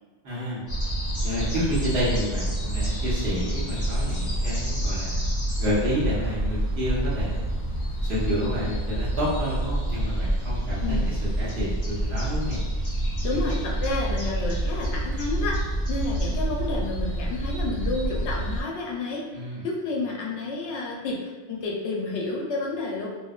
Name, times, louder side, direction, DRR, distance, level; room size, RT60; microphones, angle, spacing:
voice 1, 0.2-0.6 1.2-5.1 5.6-7.5 8.0-12.6 13.3-13.4 19.3-19.6, equal, 65° right, -8 dB, 1.1 m, -29 dB
sound 1, 0.7-18.6, right 1 dB, 20° left, 0.5 m, -27 dB
voice 2, 13.2-15.6 15.9-19.3 19.6-23.1, left 3 dB, 85° left, -2 dB, 0.9 m, -30 dB
2.7 x 2.1 x 2.3 m, 1.3 s
omnidirectional pair, 1.1 m